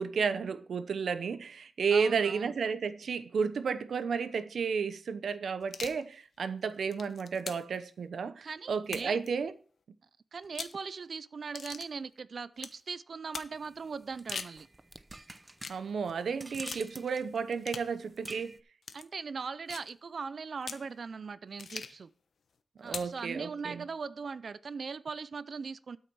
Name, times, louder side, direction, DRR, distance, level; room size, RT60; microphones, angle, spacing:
voice 1, 0.0-9.5 15.7-18.5 22.8-23.8, right 5 dB, 85° right, 0.8 m, -32 dB
voice 2, 1.9-2.5 8.4-9.2 10.3-14.7 18.9-22.1 22.8-26.0, right 5 dB, 60° right, 0.5 m, -40 dB
sound 1, 5.6-6.0 6.7-7.8 8.8-9.3 10.4-10.8 11.5-11.9 12.6-12.8 13.3-13.5 14.1-14.6 15.6-15.8 16.7-16.9 17.6-17.9 18.8-19.0 19.7-19.9 20.6-20.9 21.6-22.0 22.9-23.2, left 5 dB, 75° left, 1.0 m, -41 dB
sound 2, 13.5-18.6, right 2 dB, 20° right, 0.7 m, -48 dB
12.5 x 6.6 x 4.6 m
wide cardioid pair, 95°, 0 cm